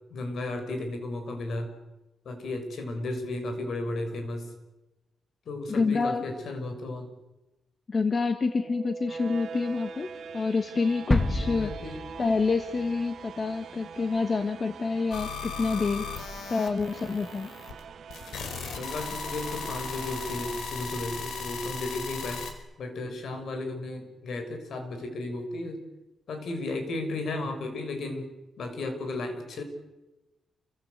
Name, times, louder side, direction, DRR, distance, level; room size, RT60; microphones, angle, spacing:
voice 1, 0.1-1.7 2.2-4.5 5.5-7.1 11.4-12.1 18.7-22.4 22.8-25.8 26.3-28.3 28.6-29.6, left 2 dB, 60° left, 7 dB, 6.1 m, -34 dB
voice 2, 5.7-6.3 7.9-10.1 10.3-11.7 12.2-16.1 16.5-17.5, left 4 dB, 30° left, 8 dB, 1.5 m, -27 dB
sound 1, 8.4-21.4, right 6 dB, 60° right, 2.0 m, -43 dB
sound 2, 11.1-12.9 13.2-13.3, left 1 dB, 10° left, 1.4 m, -29 dB
sound 3, 15.1-17.8 18.1-22.5, left 5 dB, 80° left, 4.9 m, -37 dB
28.5 x 25.0 x 8.2 m, 1.0 s
wide cardioid pair, 155°, 0 cm